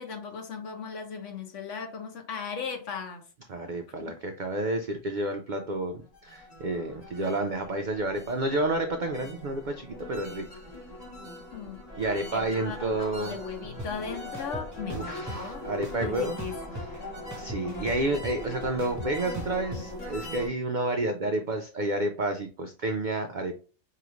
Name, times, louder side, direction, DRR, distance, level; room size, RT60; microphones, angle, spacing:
voice 1, 0.0-3.3 4.0-4.1 11.5-11.8 12.3-15.6 16.0-16.8 17.6-17.9, left 5 dB, 65° left, 1.1 m, -38 dB
voice 2, 3.5-10.4 12.0-13.4 14.9-16.4 17.4-23.6, right 2 dB, 90° right, 0.4 m, -30 dB
sound 1, 6.0-20.5, left 1 dB, 30° left, 1.4 m, -41 dB
sound 2, 13.8-13.9 14.3-15.4 15.8-17.0 17.3-19.8, equal, 15° right, 0.9 m, -38 dB
5.0 x 2.8 x 2.9 m
omnidirectional pair, 1.4 m